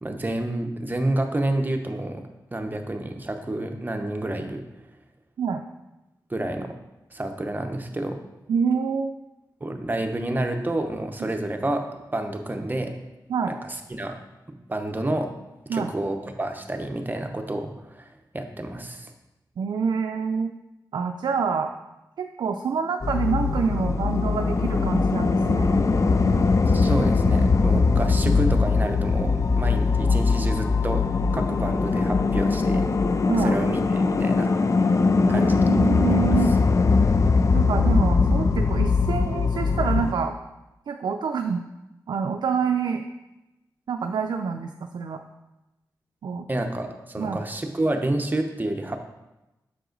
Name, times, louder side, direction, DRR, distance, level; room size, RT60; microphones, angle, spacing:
voice 1, 0.0-2.2 2.5-4.6 6.3-6.7 7.1-8.2 9.6-11.8 12.1-12.9 13.5-14.2 14.7-15.3 15.7-19.1 26.7-31.1 31.3-32.9 33.4-34.5 34.8-34.9 35.3-35.8 36.1-36.2 46.5-49.1, right 1 dB, 25° right, 5 dB, 0.8 m, -29 dB
voice 2, 8.5-9.2 11.2-11.3 13.3-13.5 15.7-15.9 19.6-20.5 20.9-21.7 22.2-25.7 30.0-30.2 33.3-33.6 35.2-36.6 37.5-40.4 40.9-41.6 42.1-43.0 43.9-45.2 46.2-46.5 47.2-47.4, right 6 dB, 85° right, 5 dB, 0.4 m, -27 dB
sound 1, 23.0-40.1, left 4 dB, 45° left, 0.4 m, -21 dB
6.6 x 4.7 x 3.9 m, 0.98 s
cardioid pair, 60°, 7 cm